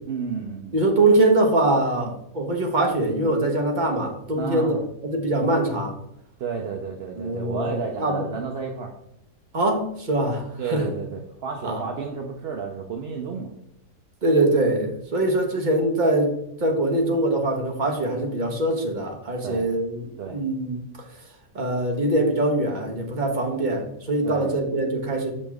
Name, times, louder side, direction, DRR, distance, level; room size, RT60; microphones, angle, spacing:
voice 1, 0.1-0.7 2.0-2.1 4.3-4.9 6.4-8.9 10.6-13.5 19.4-19.7 20.2-20.4 24.2-24.5, right 5 dB, 55° right, 1 dB, 0.7 m, -31 dB
voice 2, 0.7-4.8 5.0-5.9 7.2-8.2 9.5-10.9 11.6-11.8 14.2-16.3 16.6-20.8 21.5-25.3, right 2 dB, 35° right, 2 dB, 1.0 m, -23 dB
6.5 x 5.2 x 3.5 m, 0.76 s
omnidirectional pair, 1.7 m